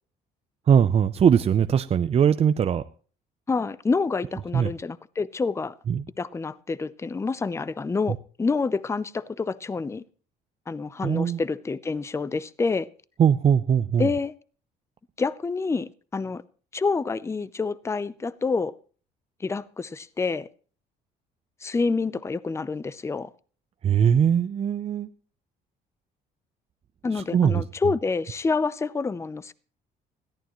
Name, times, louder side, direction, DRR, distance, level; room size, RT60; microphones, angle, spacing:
voice 1, 0.7-2.8 4.5-4.7 5.9-6.0 11.0-11.4 13.2-14.1 23.8-25.1 27.2-27.6, right 8 dB, 35° right, 0.6 m, -21 dB
voice 2, 3.5-5.7 6.2-10.0 10.7-12.9 14.0-14.3 15.2-16.4 16.7-18.7 19.4-20.5 21.6-23.3 27.0-29.5, left 4 dB, 15° left, 0.6 m, -27 dB
20.5 x 14.0 x 3.1 m
cardioid pair, 110°, 17 cm